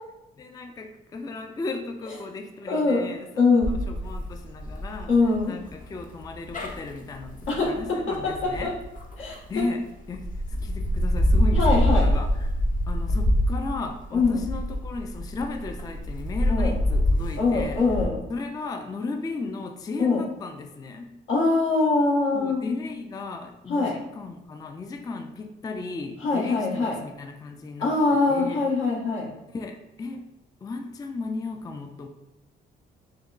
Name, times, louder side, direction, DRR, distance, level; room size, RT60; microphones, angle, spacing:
voice 1, 0.4-3.3 3.5-5.1 5.5-8.8 9.5-12.6 12.9-17.8 18.3-21.1 22.3-28.0 28.3-28.6 29.5-30.3 30.6-32.1, left 3 dB, 20° left, 5 dB, 0.3 m, -35 dB
voice 2, 2.7-3.0 3.4-3.7 5.1-5.5 7.5-8.7 9.2-9.4 11.6-12.1 14.1-14.4 16.5-16.7 17.4-18.2 20.0-20.2 21.3-22.7 23.7-23.9 26.2-27.0 27.8-29.3, left 3 dB, 80° left, -5 dB, 1.3 m, -23 dB
sound 1, 3.6-9.6 10.1-18.0, equal, 45° left, 0.7 m, -26 dB
6.5 x 2.2 x 2.4 m, 0.93 s
cardioid pair, 90°, 20 cm